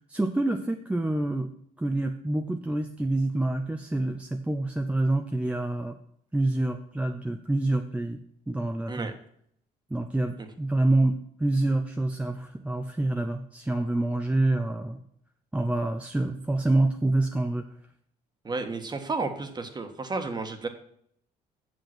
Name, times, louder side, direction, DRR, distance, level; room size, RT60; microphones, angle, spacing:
voice 1, 0.0-1.5 1.8-6.0 6.3-8.2 8.5-9.1 9.9-11.1 11.4-15.0 15.5-17.7, right 2 dB, 5° right, 4 dB, 0.7 m, -27 dB
voice 2, 18.4-20.7, right 3 dB, 25° right, 6 dB, 1.5 m, -32 dB
8.0 x 7.0 x 5.9 m, 0.68 s
cardioid pair, 110°, 17 cm